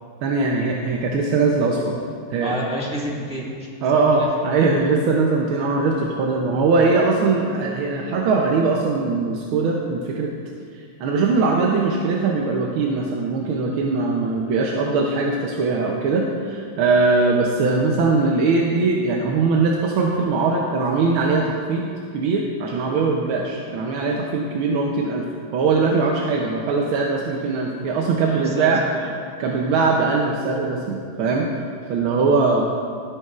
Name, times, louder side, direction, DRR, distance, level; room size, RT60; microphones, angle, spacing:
voice 1, 0.2-2.0 2.3-2.6 3.8-10.3 11.0-21.9 22.1-25.3 25.5-28.8 29.4-31.5 31.9-32.6, right 4 dB, 90° right, -1 dB, 1.6 m, -21 dB
voice 2, 2.4-3.7 4.1-4.7 28.2-29.1 29.4-29.5, equal, 5° right, -7 dB, 1.4 m, -30 dB
12.5 x 10.0 x 2.4 m, 2.2 s
omnidirectional pair, 2.2 m